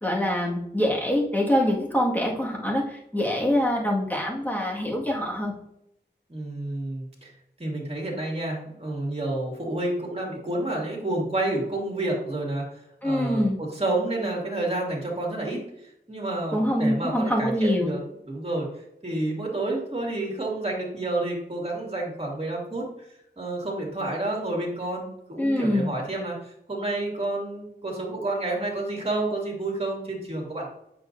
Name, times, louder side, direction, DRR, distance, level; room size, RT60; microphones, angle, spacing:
voice 1, 0.0-5.5 13.0-13.6 16.5-17.9 25.4-25.9, left 1 dB, 10° left, -2 dB, 1.9 m, -24 dB
voice 2, 6.3-7.3 7.6-12.6 13.0-15.6 16.1-18.0 18.3-18.7 19.0-22.9 23.4-26.3 26.7-30.7, right 2 dB, 35° right, -2 dB, 2.5 m, -29 dB
8.6 x 6.4 x 2.7 m, 0.78 s
wide cardioid pair, 85°, 18 cm